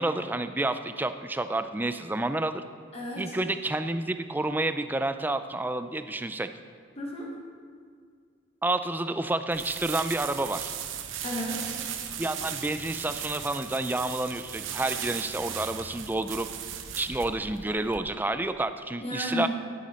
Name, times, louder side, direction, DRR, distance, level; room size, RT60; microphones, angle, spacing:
voice 1, 0.0-2.6 3.2-6.5 8.6-10.7 12.2-16.5 17.0-19.5, right 2 dB, 10° right, 10 dB, 0.3 m, -29 dB
voice 2, 2.9-3.3 7.0-7.5 11.2-11.8 19.0-19.5, left 1 dB, 30° left, -2 dB, 1.4 m, -33 dB
sound 1, 9.5-18.0, right 9 dB, 85° right, 0.7 m, -37 dB
10.5 x 9.3 x 4.3 m, 2.1 s
head